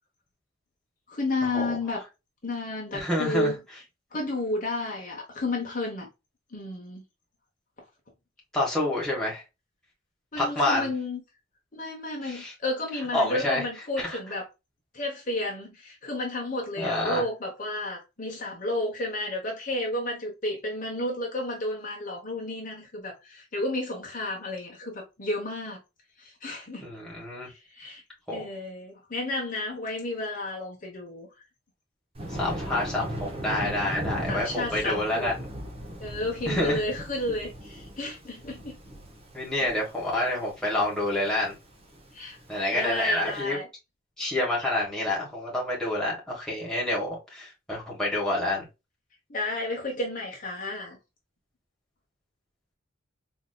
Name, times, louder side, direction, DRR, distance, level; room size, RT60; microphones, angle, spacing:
voice 1, 1.1-2.0 2.4-3.6 4.1-6.1 6.5-7.0 10.3-11.2 11.7-14.5 14.9-25.8 26.2-26.8 27.5-28.0 28.3-31.3 34.3-35.3 36.0-38.8 42.1-42.4 42.7-43.7 49.3-51.0, left 2 dB, 40° left, 0.9 m, -32 dB
voice 2, 2.9-3.6 8.5-9.4 10.4-10.9 12.2-12.5 13.1-13.6 14.0-14.2 16.8-17.3 26.8-27.5 28.3-28.4 32.3-35.3 36.5-36.8 39.3-41.6 42.5-43.6 44.2-48.7, left 1 dB, 5° left, 1.3 m, -28 dB
Thunder, 32.1-43.3, right 1 dB, 30° right, 0.8 m, -38 dB
4.0 x 2.8 x 2.3 m
head